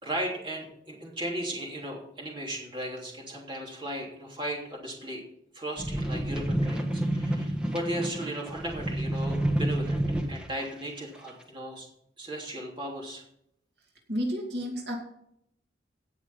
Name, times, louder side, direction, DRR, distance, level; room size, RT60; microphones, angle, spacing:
voice 1, 0.0-5.2 5.5-11.9 12.2-13.2, right 1 dB, 25° right, -1 dB, 3.1 m, -36 dB
sound 1, 5.8-10.6 11.3-11.4, right 1 dB, 5° right, 1.3 m, -29 dB
voice 2, 14.1-15.0, equal, 65° right, 0 dB, 2.5 m, -31 dB
17.5 x 6.1 x 5.5 m, 0.75 s
head